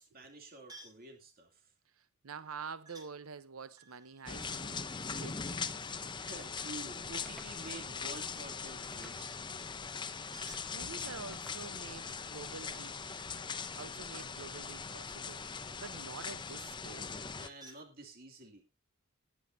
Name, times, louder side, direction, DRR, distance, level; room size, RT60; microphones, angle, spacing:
voice 1, 0.0-1.7 6.1-9.7 17.3-18.6, right 2 dB, 45° right, 2.6 m, -50 dB
sound 1, 0.7-1.1 2.9-3.1 3.7-5.5 10.1-11.1 12.0-12.9 13.2-15.1 16.9-17.9, right 2 dB, 20° right, 2.5 m, -58 dB
voice 2, 2.0-4.8 5.2-5.9 10.7-13.2 13.8-17.1, right 5 dB, 85° right, 0.8 m, -48 dB
sound 2, 4.3-17.5, left 5 dB, 20° left, 0.7 m, -41 dB
sound 3, 7.3-7.6 8.9-9.5 10.5-10.8 11.3-12.0, equal, ahead, 1.2 m, -56 dB
20.0 x 9.3 x 2.7 m
head